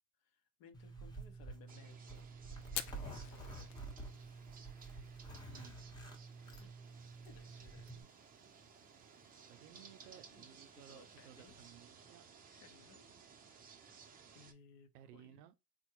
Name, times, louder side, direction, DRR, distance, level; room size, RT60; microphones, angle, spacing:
voice 1, 0.2-2.3 2.9-3.7 6.6-6.7 7.3-8.1 9.7-11.6 12.6-13.1 13.7-13.9 14.3-15.4, left 5 dB, 50° left, 0.8 m, -63 dB
Zipper (clothing), 0.7-8.0, right 3 dB, 10° left, 0.9 m, -49 dB
sound 1, 1.7-14.5, right 6 dB, 20° right, 0.6 m, -59 dB
Fire, 2.6-11.8, left 12 dB, 80° left, 0.5 m, -53 dB
voice 2, 9.5-12.3 14.9-15.5, right 12 dB, 80° right, 0.6 m, -58 dB
3.6 x 2.1 x 3.0 m
hypercardioid pair, 95°, 46 cm